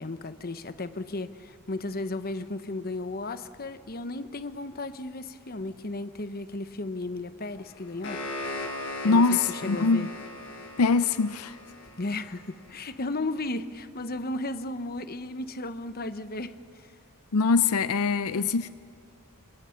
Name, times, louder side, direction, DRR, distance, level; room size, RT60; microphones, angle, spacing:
voice 1, 0.0-8.2 9.0-10.1 12.0-16.9 18.4-18.5, left 2 dB, 45° left, 1.0 m, -35 dB
sound 1, 7.6-12.7, left 1 dB, 60° left, 6.5 m, -38 dB
voice 2, 9.0-10.1 10.8-11.6 17.3-18.7, left 4 dB, 75° left, 0.6 m, -23 dB
28.0 x 26.5 x 5.9 m
head